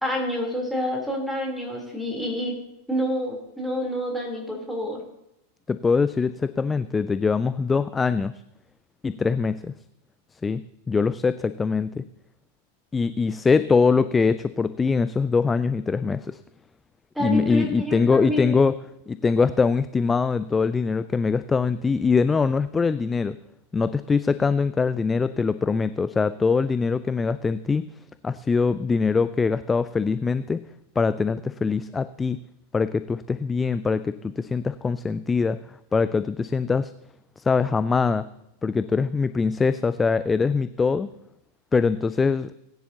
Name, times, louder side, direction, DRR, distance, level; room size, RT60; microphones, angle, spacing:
voice 1, 0.0-2.5 2.9-5.0 17.2-18.5, equal, ahead, -1 dB, 3.3 m, -28 dB
voice 2, 5.7-8.3 9.0-9.7 10.4-12.0 12.9-16.4 17.2-18.8 19.1-23.4 23.7-27.9 28.2-30.6 31.0-32.4 32.7-35.6 35.9-36.9 37.4-38.3 38.6-41.1 41.7-42.5, left 4 dB, 15° left, 14 dB, 0.3 m, -23 dB
19.5 x 10.0 x 2.8 m, 0.83 s
figure-of-eight pair, 90°, 0 cm